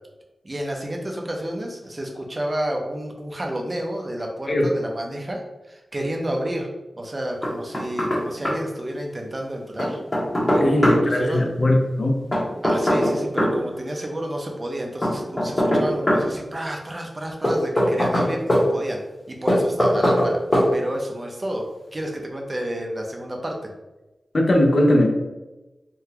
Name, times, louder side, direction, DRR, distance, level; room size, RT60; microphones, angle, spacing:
voice 1, 0.4-5.4 5.7-6.7 7.0-10.0 10.5-11.5 12.6-19.0 19.3-20.4 20.7-23.7, right 1 dB, 35° right, 1 dB, 0.6 m, -30 dB
Knock, 7.4-8.2 8.5-8.6 9.8-11.0 12.3-13.6 15.0-16.3 17.4-18.6 19.5-20.3 20.5-20.7, equal, 30° left, 1.1 m, -20 dB
voice 2, 10.6-12.2 24.3-25.1, left 1 dB, 60° left, 1 dB, 0.6 m, -19 dB
3.7 x 2.3 x 2.8 m, 1.1 s
wide cardioid pair, 80°, 0 cm